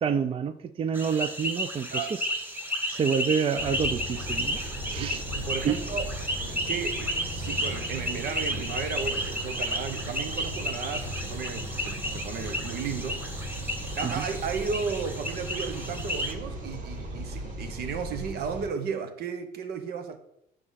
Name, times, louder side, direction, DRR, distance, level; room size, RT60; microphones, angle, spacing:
voice 1, 0.0-2.3 2.9-4.6 4.9-5.2 5.6-5.8 14.0-14.2, right 6 dB, 35° right, 0.5 m, -28 dB
sound 1, 0.9-16.3, equal, 10° right, 1.5 m, -33 dB
sound 2, 3.6-18.7, equal, 50° right, 2.6 m, -37 dB
voice 2, 5.0-6.0 6.4-13.2 14.0-20.2, right 6 dB, 70° right, 1.2 m, -34 dB
9.8 x 6.6 x 4.1 m
cardioid pair, 110°, 17 cm